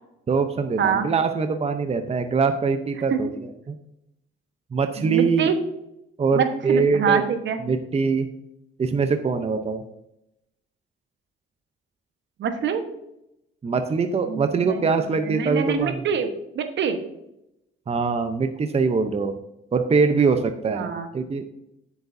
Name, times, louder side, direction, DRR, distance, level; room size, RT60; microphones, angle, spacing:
voice 1, 0.3-3.3 3.7-3.8 4.7-5.5 6.2-7.2 7.6-8.3 8.8-9.8 13.6-16.0 17.9-19.4 19.7-21.4, right 5 dB, 30° right, 7 dB, 0.8 m, -23 dB
voice 2, 0.8-1.1 3.1-3.2 5.0-5.6 6.3-7.6 12.4-12.8 14.2-15.0 15.3-16.3 16.5-17.0 20.7-21.1, right 7 dB, 65° right, 7 dB, 1.3 m, -25 dB
9.5 x 8.2 x 2.7 m, 0.83 s
cardioid pair, 90°, 20 cm